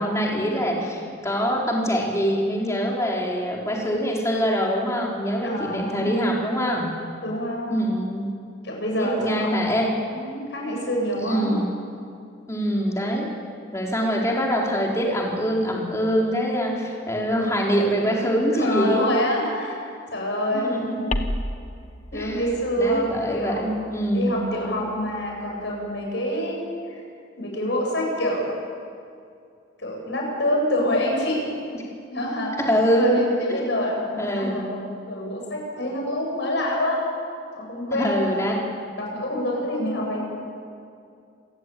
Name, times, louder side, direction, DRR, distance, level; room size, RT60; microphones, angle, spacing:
voice 1, 0.0-6.9 7.7-8.3 9.0-9.9 11.2-11.7 12.5-13.3 13.7-19.1 20.5-21.3 22.1-22.4 22.8-24.4 32.7-33.2 33.5-33.7 34.2-34.6 37.9-38.6, equal, 15° left, -2 dB, 4.0 m, -24 dB
voice 2, 5.4-6.1 7.2-7.8 8.6-9.7 10.1-11.5 18.5-19.8 20.1-20.7 22.1-23.7 24.1-26.6 26.9-27.0 27.4-28.5 29.8-31.4 32.1-32.5 32.9-34.8 35.1-37.0 37.5-38.3 39.0-40.2, equal, 60° left, -1 dB, 7.9 m, -26 dB
sound 1, 21.1-26.0, left 1 dB, 35° left, 1.2 m, -35 dB
28.0 x 15.5 x 9.3 m, 2.5 s
head